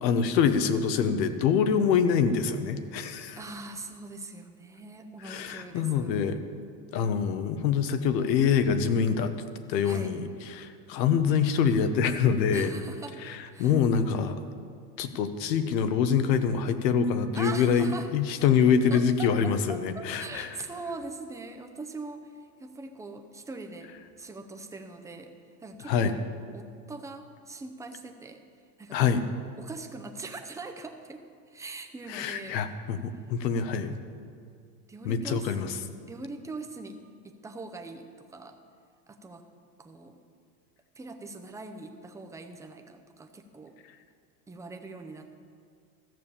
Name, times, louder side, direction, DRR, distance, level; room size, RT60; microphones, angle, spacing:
voice 1, 0.0-3.4 5.2-6.4 6.9-9.3 9.7-10.2 10.5-12.7 13.2-14.4 15.0-20.5 25.9-26.1 28.9-29.2 32.1-33.9 35.0-35.7, left 7 dB, 85° left, 10 dB, 1.1 m, -25 dB
voice 2, 3.4-6.1 9.8-10.2 12.5-13.2 13.5-13.8 17.3-18.1 18.9-26.2 26.5-28.4 28.8-29.2 29.6-31.2 31.5-32.6 34.9-38.6 39.1-39.5 39.8-40.2 41.0-43.8 44.5-45.3, right 3 dB, 5° right, 6 dB, 0.6 m, -42 dB
14.0 x 7.1 x 6.8 m, 2.2 s
supercardioid pair, 125°, 49 cm